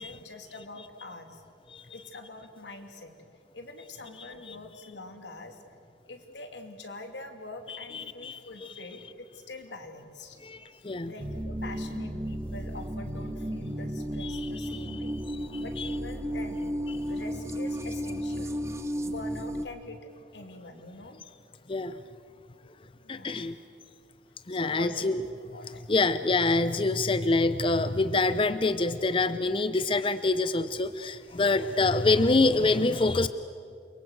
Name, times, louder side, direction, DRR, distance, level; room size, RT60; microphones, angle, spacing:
voice 1, 0.0-1.4 1.9-3.1 3.5-5.6 6.1-10.4 10.7-15.2 15.6-16.7 17.1-18.6 19.0-21.2 23.0-23.5 24.5-25.1 25.5-25.8, left 2 dB, 85° left, 5 dB, 2.7 m, -44 dB
voice 2, 4.2-4.6 7.7-8.7 10.4-11.1 14.2-15.0 15.3-15.9 16.9-17.0 21.7-22.0 23.1-23.6 24.5-25.2 25.6-33.3, left 3 dB, 30° left, 12 dB, 0.6 m, -26 dB
sound 1, 11.2-19.7, equal, 15° right, 1.0 m, -33 dB
29.0 x 23.5 x 7.8 m, 2.4 s
head